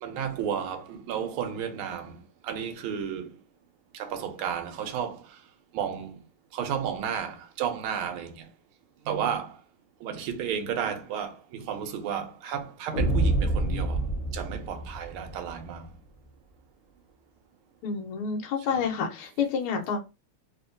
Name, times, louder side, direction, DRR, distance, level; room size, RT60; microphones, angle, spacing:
voice 1, 0.0-3.3 3.9-5.4 5.7-6.2 6.5-8.5 9.0-9.6 10.0-14.1 14.3-15.9 18.7-18.9, right 8 dB, 80° right, 1.5 m, -33 dB
sound 1, 12.9-15.5, right 1 dB, 45° left, 0.8 m, -27 dB
voice 2, 17.8-20.0, left 6 dB, 80° left, 1.6 m, -29 dB
3.5 x 2.8 x 2.6 m
omnidirectional pair, 2.4 m